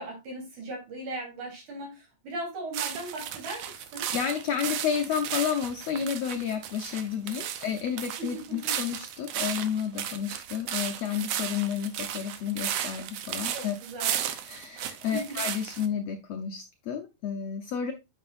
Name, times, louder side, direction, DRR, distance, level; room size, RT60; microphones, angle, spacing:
voice 1, 0.0-4.1 7.6-7.7 8.3-8.7 13.4-14.2 15.1-15.4, right 2 dB, 60° right, -1 dB, 5.0 m, -38 dB
sound 1, 2.7-15.9, right 10 dB, 85° right, 1.4 m, -34 dB
voice 2, 4.1-13.7 14.4-17.9, left 8 dB, 75° left, 5 dB, 1.5 m, -31 dB
9.4 x 6.4 x 2.5 m, 0.23 s
omnidirectional pair, 3.9 m